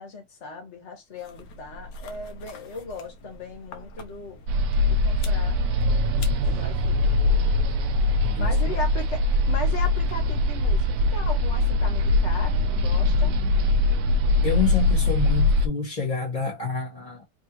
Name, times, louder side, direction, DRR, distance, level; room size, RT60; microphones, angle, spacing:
voice 1, 0.0-4.4 4.9-5.6 6.5-7.0 8.4-13.4, left 3 dB, 45° left, 1.6 m, -37 dB
sound 1, 1.1-11.5, right 1 dB, 80° left, 1.5 m, -43 dB
sound 2, 4.5-15.7, left 2 dB, 70° right, 1.1 m, -22 dB
voice 2, 8.2-8.7 14.4-17.2, left 5 dB, 30° left, 1.7 m, -28 dB
3.7 x 3.4 x 2.9 m
omnidirectional pair, 1.7 m